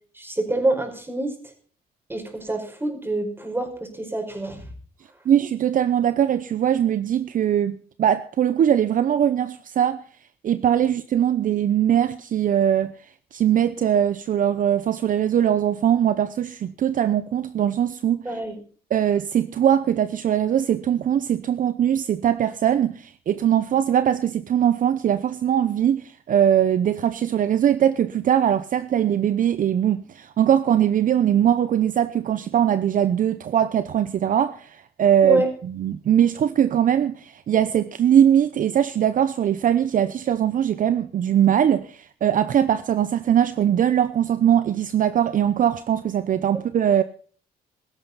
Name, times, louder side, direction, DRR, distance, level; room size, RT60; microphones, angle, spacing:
voice 1, 0.1-1.3 2.1-4.7 18.2-18.5 35.2-35.5, right 2 dB, 15° right, 5.1 m, -26 dB
voice 2, 5.3-10.0 10.4-12.9 13.3-18.2 18.9-35.4 35.8-47.0, right 10 dB, 55° right, 0.8 m, -21 dB
16.5 x 14.0 x 4.1 m
cardioid pair, 110°, 17 cm